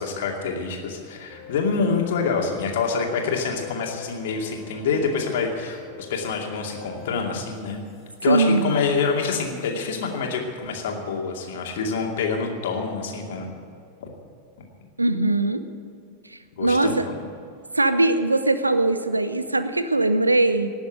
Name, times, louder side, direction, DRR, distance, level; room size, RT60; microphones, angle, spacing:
voice 1, 0.0-5.8 6.1-7.8 8.2-13.5 14.0-14.1 16.6-17.0, left 5 dB, 55° left, 1 dB, 2.5 m, -26 dB
sound 1, 1.3-10.2, left 5 dB, 30° left, 4.0 m, -43 dB
voice 2, 8.3-8.8 15.0-15.6 16.6-17.1 17.7-20.7, right 2 dB, 85° right, 11 dB, 0.8 m, -21 dB
18.5 x 7.2 x 9.4 m, 2.4 s
figure-of-eight pair, 90°, 0 cm